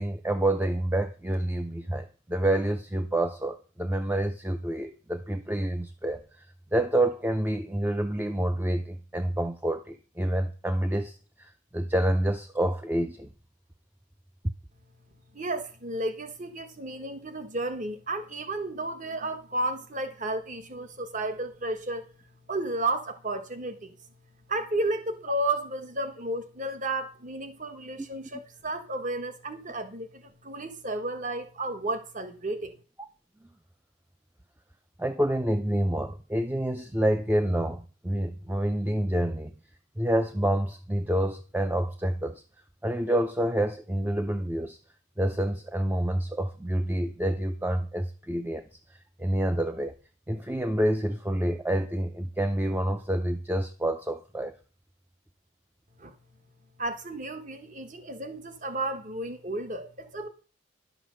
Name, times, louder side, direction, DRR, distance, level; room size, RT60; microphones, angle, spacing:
voice 1, 0.0-6.5 6.7-13.3 35.0-39.5 40.0-42.4 42.8-44.8 45.2-48.6 48.9-49.9 50.3-54.5, right 1 dB, 10° right, 0.5 m, -28 dB
voice 2, 15.3-22.1 22.5-23.9 24.5-32.7 56.0-56.1 56.8-60.3, right 2 dB, 40° right, 1.2 m, -32 dB
11.0 x 6.0 x 6.3 m
head